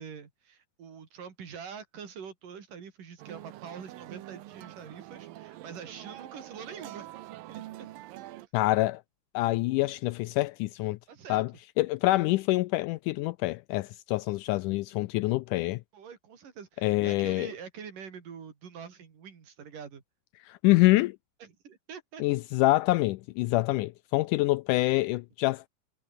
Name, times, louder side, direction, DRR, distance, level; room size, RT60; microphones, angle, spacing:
voice 1, 0.0-7.2 7.5-7.9 11.1-11.4 15.9-20.0 21.4-22.2, right 7 dB, 70° right, 4.9 m, -45 dB
sound 1, 3.2-8.5, right 15 dB, 85° right, 2.7 m, -45 dB
voice 2, 8.5-9.0 9.3-11.0 11.3-11.5 11.8-15.8 16.8-17.5 20.5-21.2 22.2-25.6, left 19 dB, 80° left, 1.9 m, -26 dB
omnidirectional pair, 4.0 m